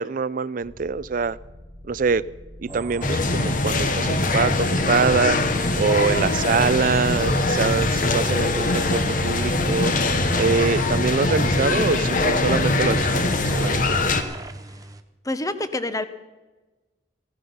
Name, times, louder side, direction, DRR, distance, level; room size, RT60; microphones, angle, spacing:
voice 1, 0.0-1.4 1.9-2.2 2.6-5.4 5.8-9.9 10.3-14.0, right 5 dB, 50° right, 18 dB, 0.4 m, -24 dB
sound 1, 0.6-13.9, equal, 85° left, 6.3 m, -43 dB
sound 2, 2.7-15.0, right 1 dB, 20° right, 0.8 m, -36 dB
sound 3, 3.0-14.2, left 2 dB, 50° left, 1.1 m, -22 dB
voice 2, 15.2-16.0, left 2 dB, 20° left, 11 dB, 0.8 m, -26 dB
16.5 x 12.0 x 5.5 m, 1.2 s
head